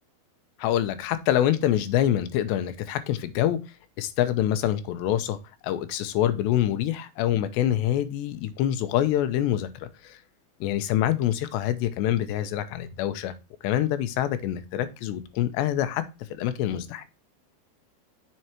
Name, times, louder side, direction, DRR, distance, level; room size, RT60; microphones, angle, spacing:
voice 1, 0.6-3.6 4.0-5.4 5.6-10.2 10.6-13.3 13.6-16.0 16.4-17.0, left 12 dB, 90° left, 11 dB, 3.0 m, -25 dB
7.7 x 6.9 x 2.9 m, 0.28 s
omnidirectional pair, 5.0 m